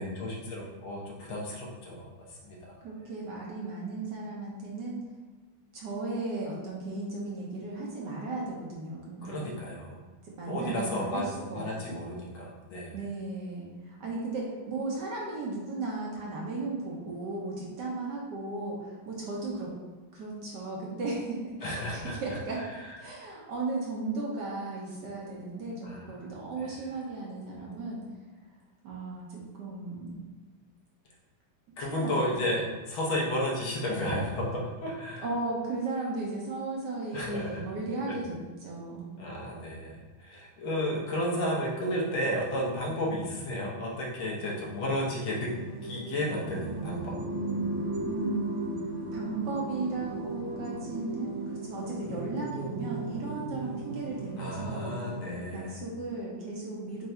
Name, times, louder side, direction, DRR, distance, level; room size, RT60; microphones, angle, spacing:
voice 1, 0.0-2.8 9.2-10.0 10.5-13.0 21.6-22.2 25.8-26.2 26.6-26.7 31.8-35.3 37.1-37.6 38.1-38.2 39.2-45.5 45.8-47.2 54.4-55.8, left 1 dB, 70° left, -3 dB, 1.7 m, -33 dB
voice 2, 2.8-5.0 5.7-9.5 10.2-12.0 12.9-19.7 20.1-22.6 23.0-28.0 28.8-30.3 31.8-32.1 35.2-39.1 48.1-48.5 49.1-54.9 55.5-57.1, right 3 dB, 60° right, -4 dB, 1.3 m, -35 dB
sound 1, 45.5-55.6, right 2 dB, 85° right, 1.7 m, -36 dB
4.5 x 2.6 x 4.3 m, 1.4 s
omnidirectional pair, 2.3 m